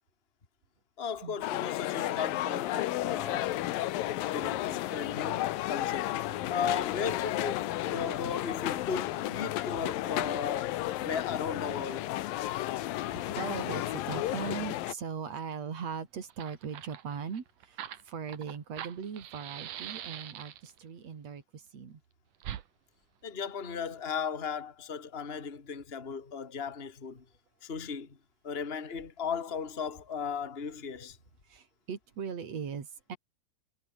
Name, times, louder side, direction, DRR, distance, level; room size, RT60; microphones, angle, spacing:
voice 1, 1.0-3.6 4.1-6.2 6.5-12.1 23.2-27.2 27.6-28.2 28.4-31.2, left 6 dB, 20° left, 2.2 m, -36 dB
sound 1, 1.4-14.9, left 15 dB, 85° left, 2.8 m, -33 dB
voice 2, 12.4-22.0 31.5-33.2, right 6 dB, 50° right, 4.0 m, -40 dB
Fire, 15.9-16.0 16.2-20.8 22.4-22.6, right 11 dB, 65° right, 2.9 m, -43 dB
omnidirectional pair, 4.0 m